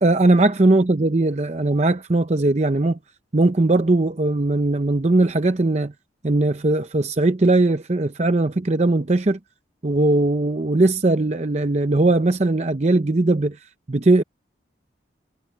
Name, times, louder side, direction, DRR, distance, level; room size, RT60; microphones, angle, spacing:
voice 1, 0.0-3.0 3.3-5.9 6.2-9.4 9.8-13.6 13.9-14.2, right 2 dB, 35° right, 0.7 m, -19 dB
head